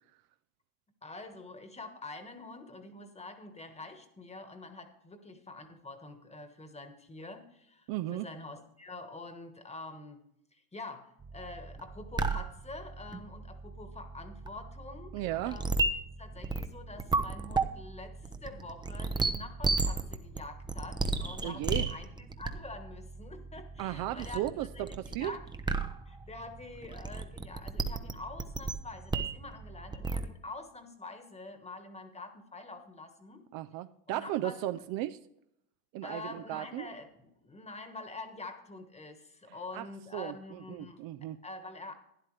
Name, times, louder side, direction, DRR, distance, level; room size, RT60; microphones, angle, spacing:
voice 1, 1.0-10.2 10.5-15.7 16.2-25.4 26.1-33.4 34.1-34.9 36.0-41.1 41.4-41.9, left 3 dB, 15° left, 8 dB, 1.3 m, -46 dB
voice 2, 7.9-8.3 15.1-15.6 21.4-21.9 23.8-25.4 33.5-35.2 35.9-36.9 39.7-39.9 40.1-41.4, right 14 dB, 55° right, 12 dB, 0.5 m, -35 dB
sound 1, 11.2-30.3, right 3 dB, 10° right, 0.5 m, -35 dB
12.0 x 10.0 x 3.2 m, 0.78 s
supercardioid pair, 105°, 44 cm